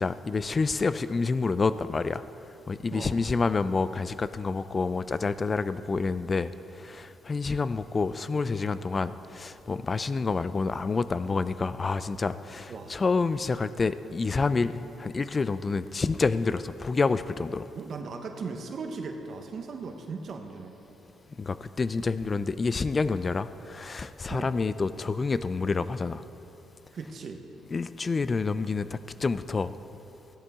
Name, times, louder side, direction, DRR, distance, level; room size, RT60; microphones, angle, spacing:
voice 1, 0.0-2.3 2.7-17.7 21.4-26.2 27.7-29.7, left 4 dB, 30° left, 14 dB, 0.4 m, -28 dB
voice 2, 17.7-20.7 24.3-24.5 26.9-27.4, right 4 dB, 55° right, 4 dB, 1.1 m, -37 dB
16.0 x 11.0 x 3.6 m, 3.0 s
cardioid pair, 90°, 0 cm